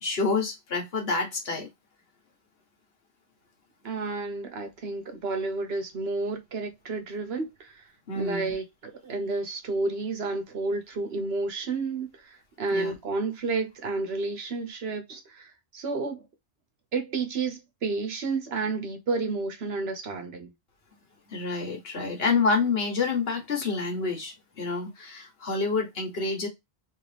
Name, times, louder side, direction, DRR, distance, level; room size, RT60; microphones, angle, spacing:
voice 1, 0.0-1.7 8.1-8.6 12.7-12.9 21.3-26.5, left 4 dB, 70° left, 1.4 m, -28 dB
voice 2, 3.8-7.9 8.1-16.2 16.9-20.5, right 3 dB, 75° right, 1.2 m, -31 dB
3.1 x 2.8 x 3.2 m
omnidirectional pair, 1.1 m